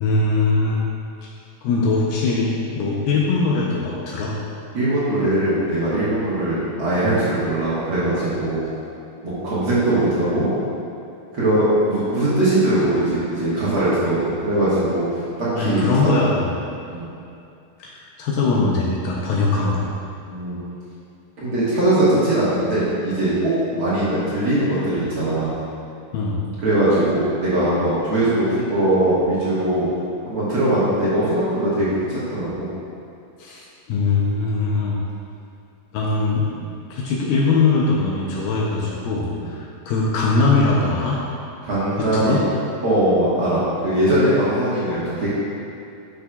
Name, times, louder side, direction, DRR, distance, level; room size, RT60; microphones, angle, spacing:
voice 1, 0.0-0.8 1.6-4.3 15.6-16.5 17.8-19.9 26.1-26.4 33.4-33.6 33.9-35.0 35.9-36.4 36.9-41.2 42.0-42.5, left 3 dB, 75° left, -4 dB, 2.3 m, -21 dB
voice 2, 4.7-8.7 9.2-10.5 11.3-15.0 15.4-16.1 16.9-17.1 20.3-20.6 21.4-25.5 26.6-29.9 30.3-32.7 36.6-36.7 39.4-39.5 41.6-42.4 42.8-45.3, right 1 dB, 55° right, -11 dB, 1.6 m, -20 dB
10.5 x 6.3 x 2.3 m, 2.6 s
omnidirectional pair, 4.3 m